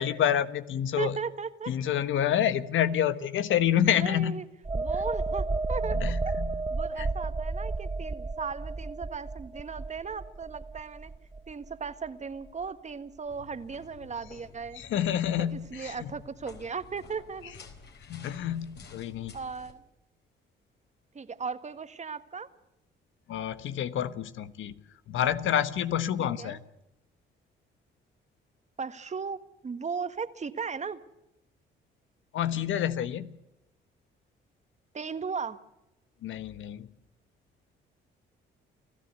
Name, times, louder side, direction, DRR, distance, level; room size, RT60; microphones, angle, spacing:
voice 1, 0.0-1.2 1.7-4.4 5.9-6.5 7.0-7.1 14.7-16.1 18.1-19.3 23.3-24.7 25.1-26.6 32.3-33.3 36.2-36.9, left 10 dB, 75° left, 13 dB, 1.3 m, -28 dB
voice 2, 1.0-1.7 4.0-4.4 4.7-6.0 6.7-11.1 11.5-14.8 15.4-17.6 19.3-19.8 21.1-22.5 26.2-26.6 28.8-31.0 34.9-35.6, right 5 dB, 35° right, 11 dB, 1.6 m, -37 dB
sound 1, 4.6-12.1 12.4-12.6, right 3 dB, 20° right, 0.8 m, -32 dB
sound 2, 13.3-19.7, left 5 dB, 55° left, 4.3 m, -51 dB
29.0 x 15.0 x 8.2 m, 0.90 s
cardioid pair, 90°, 20 cm